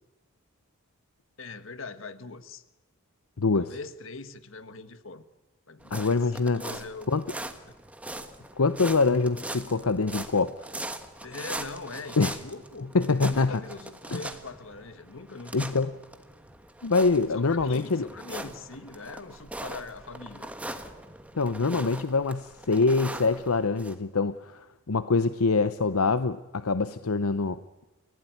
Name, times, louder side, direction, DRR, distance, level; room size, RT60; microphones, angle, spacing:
voice 1, 1.4-2.6 3.5-5.3 5.7-6.2 6.5-7.1 11.2-12.9 13.2-15.7 17.3-20.5, left 3 dB, 60° left, 11 dB, 1.5 m, -41 dB
voice 2, 3.4-3.7 5.9-6.6 7.1-7.2 8.6-10.7 12.2-12.3 12.9-13.6 14.1-14.2 15.5-16.0 16.8-18.1 21.3-27.8, left 4 dB, 80° left, 12 dB, 0.8 m, -25 dB
sound 1, 5.8-23.9, right 1 dB, 5° right, 1.4 m, -41 dB
30.0 x 16.0 x 9.3 m, 1.1 s
head